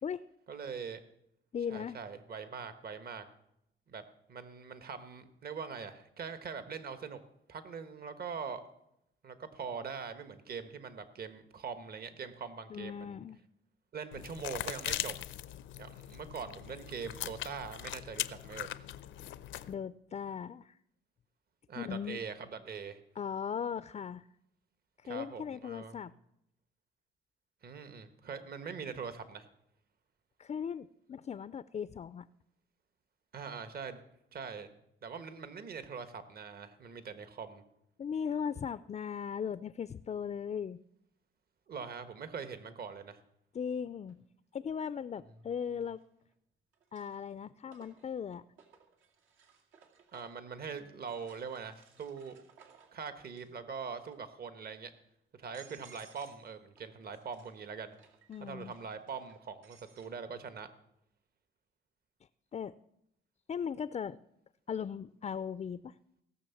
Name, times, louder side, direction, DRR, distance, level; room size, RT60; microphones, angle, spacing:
voice 1, 0.5-1.0 1.7-3.3 3.9-4.0 4.3-7.2 7.5-8.6 9.2-13.2 13.9-15.2 15.8-18.7 21.7-23.0 25.0-26.0 27.6-29.5 33.3-34.0 34.3-34.7 35.0-37.6 41.7-43.2 50.1-52.4 52.9-54.9 55.4-57.9 58.4-60.7, right 6 dB, 50° right, 10 dB, 1.4 m, -42 dB
voice 2, 1.5-2.0 12.7-13.4 19.7-20.8 21.8-22.2 23.2-24.3 25.0-26.1 30.4-32.3 38.0-40.8 43.5-44.2 44.5-46.0 46.9-48.4 58.3-58.7 62.5-62.7 63.5-64.2 64.7-66.0, left 7 dB, 35° left, 15 dB, 0.4 m, -38 dB
sound 1, 14.1-19.7, left 12 dB, 75° left, 0.6 m, -40 dB
sound 2, 44.1-44.2 45.9-46.3 46.7-50.5 51.0-53.6 53.9-54.4 55.0-55.1 55.4-56.5 56.8-60.1, right 6 dB, 80° right, 2.3 m, -62 dB
17.0 x 6.6 x 7.1 m, 0.79 s
cardioid pair, 90°, 20 cm